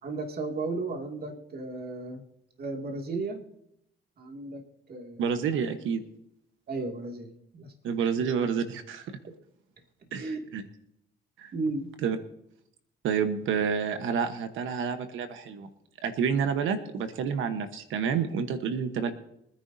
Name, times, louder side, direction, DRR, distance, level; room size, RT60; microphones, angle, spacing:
voice 1, 0.0-2.2 2.6-3.4 4.2-4.6 4.9-5.4 6.7-7.7 8.0-8.1 10.2-10.4 11.5-11.9, right 3 dB, 50° right, 2 dB, 2.4 m, -34 dB
voice 2, 5.2-6.0 7.8-9.2 10.1-10.6 11.4-11.5 12.0-12.2 13.0-15.7 16.0-19.1, right 6 dB, 80° right, 9 dB, 1.2 m, -29 dB
24.0 x 10.0 x 2.8 m, 0.78 s
cardioid pair, 90°, 20 cm